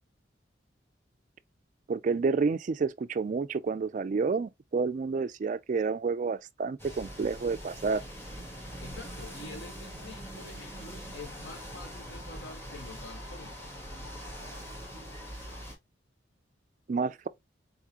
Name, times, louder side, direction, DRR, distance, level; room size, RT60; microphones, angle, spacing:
voice 1, 1.9-8.0 16.9-17.3, right 4 dB, 40° right, 0.3 m, -29 dB
sound 1, 6.8-15.8, equal, 10° left, 1.2 m, -43 dB
voice 2, 8.8-13.7, left 3 dB, 65° left, 1.0 m, -47 dB
4.0 x 3.6 x 2.8 m
head